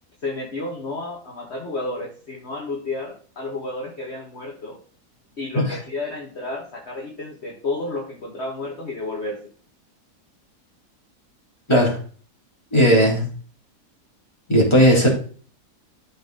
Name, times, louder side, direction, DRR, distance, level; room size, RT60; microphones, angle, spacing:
voice 1, 0.2-4.8 5.4-9.4, left 2 dB, 40° left, -2 dB, 1.9 m, -31 dB
voice 2, 12.7-13.2 14.5-15.1, equal, 15° left, -2 dB, 3.3 m, -16 dB
13.5 x 4.6 x 3.9 m, 0.43 s
omnidirectional pair, 1.7 m